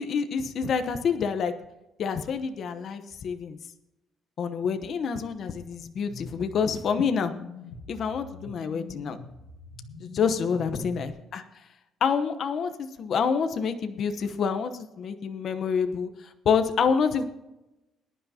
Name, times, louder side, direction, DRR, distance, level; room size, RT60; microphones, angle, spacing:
voice 1, 0.0-1.5 2.0-3.6 4.4-7.3 7.9-9.2 10.0-11.4 12.0-14.7 15.0-16.1 16.4-17.2, left 6 dB, 50° left, 8 dB, 1.0 m, -27 dB
sound 1, 6.1-11.1, left 4 dB, 90° left, 1.7 m, -42 dB
20.5 x 10.5 x 2.9 m, 0.96 s
cardioid pair, 120°, 0 cm